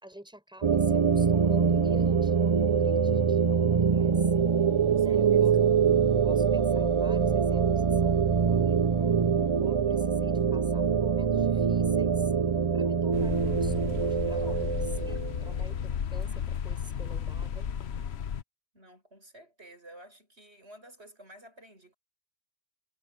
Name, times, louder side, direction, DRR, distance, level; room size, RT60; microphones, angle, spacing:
voice 1, 0.0-4.4 5.0-5.5 6.1-8.2 8.4-9.2 9.6-12.3 12.7-17.7, right 1 dB, 5° right, 5.9 m, -48 dB
sound 1, 0.6-15.6, right 6 dB, 40° right, 0.5 m, -24 dB
voice 2, 4.9-5.7 18.7-21.9, right 1 dB, 75° right, 8.3 m, -52 dB
sound 2, 13.1-18.4, left 8 dB, 75° left, 1.1 m, -33 dB
omnidirectional pair, 1.1 m